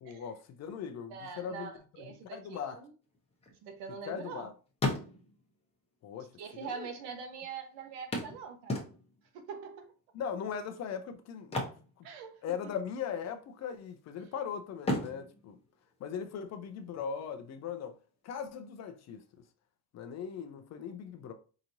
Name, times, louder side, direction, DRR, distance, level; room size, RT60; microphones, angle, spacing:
voice 1, 0.0-2.8 4.0-4.5 6.0-6.3 6.6-6.9 10.1-11.6 12.0-12.1 12.4-15.6 16.0-18.0 18.2-19.2 19.9-21.3, left 7 dB, 40° left, 0.5 m, -39 dB
voice 2, 1.1-2.9 3.6-4.5 6.4-8.8 9.3-9.9 12.0-12.7, right 6 dB, 80° right, 1.1 m, -44 dB
sound 1, 3.1-4.4 4.7-5.5 6.4-6.5 6.8-6.9 8.1-9.3 11.4-12.7 12.9-13.2 13.7-14.3 14.8-16.5 18.5-18.6 19.0-19.1, left 2 dB, 15° left, 0.8 m, -36 dB
4.9 x 2.9 x 2.6 m
cardioid pair, 155°, 42 cm